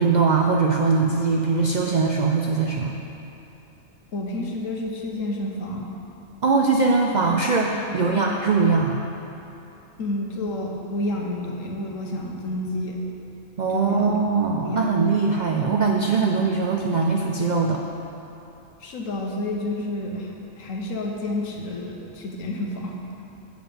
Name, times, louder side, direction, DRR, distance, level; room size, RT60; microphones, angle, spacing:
voice 1, 0.0-2.9 6.4-9.1 13.6-17.8, right 4 dB, 65° right, 0 dB, 0.4 m, -21 dB
voice 2, 4.1-5.9 7.9-8.2 10.0-13.0 13.7-14.1 14.5-14.9 18.8-23.2, left 1 dB, 80° left, 0 dB, 1.4 m, -30 dB
7.6 x 7.0 x 5.1 m, 3.0 s
omnidirectional pair, 1.4 m